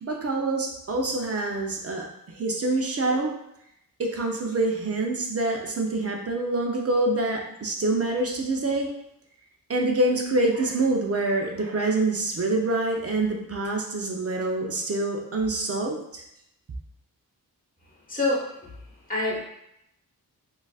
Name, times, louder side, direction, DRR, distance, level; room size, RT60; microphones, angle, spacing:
voice 1, 0.0-2.1 2.4-3.3 4.0-8.9 9.7-16.2, right 2 dB, 40° right, 1 dB, 0.6 m, -26 dB
voice 2, 18.1-18.4 19.1-19.4, left 2 dB, 20° left, -4 dB, 1.1 m, -25 dB
3.8 x 2.5 x 2.3 m, 0.78 s
cardioid pair, 60°, 38 cm